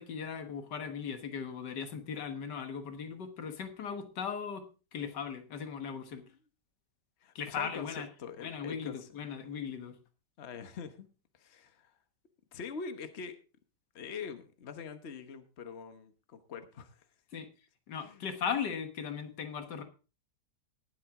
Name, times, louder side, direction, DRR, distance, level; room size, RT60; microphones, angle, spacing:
voice 1, 0.0-6.2 7.4-8.1 8.4-10.0 17.3-17.5 17.9-19.8, left 7 dB, 90° left, 8 dB, 2.0 m, -38 dB
voice 2, 7.2-9.6 10.4-11.1 11.3-12.0 12.5-13.4 13.9-17.1 17.9-18.2, left 5 dB, 45° left, 9 dB, 1.3 m, -44 dB
19.5 x 7.7 x 3.6 m, 0.33 s
omnidirectional pair, 1.8 m